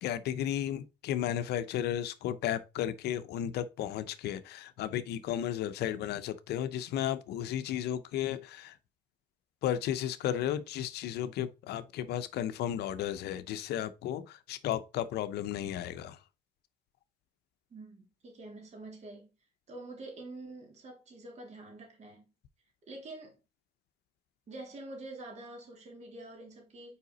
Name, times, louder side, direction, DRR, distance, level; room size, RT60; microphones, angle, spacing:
voice 1, 0.0-8.8 9.6-16.2, left 11 dB, 75° left, 0.7 m, -34 dB
voice 2, 17.7-19.3 19.7-22.3 22.8-23.4 24.5-27.0, right 2 dB, 40° right, 3.3 m, -46 dB
5.7 x 4.9 x 4.0 m
cardioid pair, 110°, 17 cm